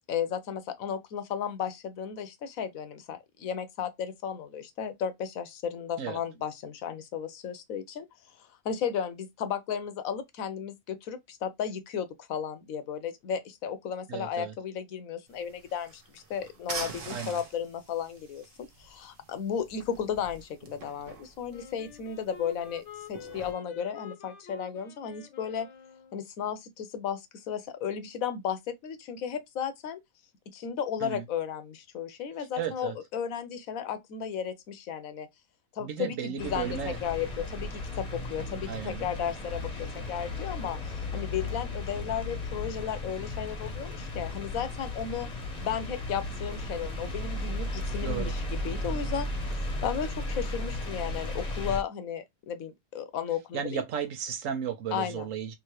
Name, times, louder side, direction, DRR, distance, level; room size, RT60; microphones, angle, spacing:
voice 1, 0.1-8.1 8.6-22.8 23.1-25.7 26.1-30.0 30.5-35.3 35.7-45.3 45.6-49.3 49.8-53.8 54.9-55.3, left 8 dB, 90° left, 1.2 m, -34 dB
voice 2, 14.1-14.5 17.1-17.4 31.0-31.2 32.6-32.9 35.8-37.0 38.7-39.1 48.0-48.4 53.5-55.5, right 8 dB, 75° right, 1.1 m, -34 dB
sound 1, 15.3-23.5, right 4 dB, 45° right, 1.0 m, -45 dB
Wind instrument woodwind instrument, 21.5-26.2, left 7 dB, 65° left, 1.0 m, -48 dB
sound 2, 36.4-51.8, left 2 dB, 35° left, 0.9 m, -35 dB
3.6 x 2.8 x 3.1 m
omnidirectional pair, 1.4 m